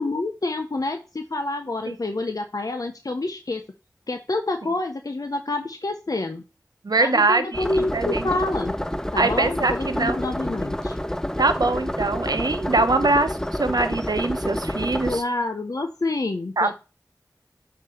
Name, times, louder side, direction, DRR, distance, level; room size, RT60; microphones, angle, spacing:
voice 1, 0.0-3.6 4.1-6.4 7.0-8.7 9.1-11.0 15.1-16.7, left 2 dB, 65° left, 5 dB, 0.7 m, -28 dB
voice 2, 6.8-8.3 9.2-10.2 11.4-15.2 16.6-16.7, right 3 dB, 75° right, 9 dB, 0.9 m, -23 dB
sound 1, 7.5-15.2, equal, 10° left, 0.5 m, -28 dB
8.3 x 2.9 x 5.7 m, 0.30 s
wide cardioid pair, 45°, 7 cm